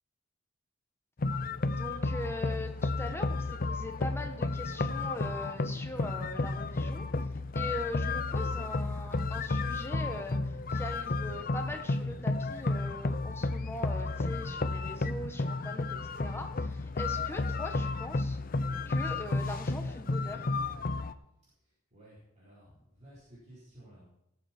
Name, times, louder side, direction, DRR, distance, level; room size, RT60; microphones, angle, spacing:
sound 1, 1.2-21.1, left 3 dB, 45° left, 0.6 m, -32 dB
voice 1, 1.7-7.1 7.5-18.4 18.8-20.5, left 1 dB, 10° left, 4 dB, 1.3 m, -41 dB
voice 2, 21.6-24.1, right 1 dB, 35° right, -9 dB, 4.2 m, -55 dB
17.5 x 8.0 x 4.4 m, 0.80 s
head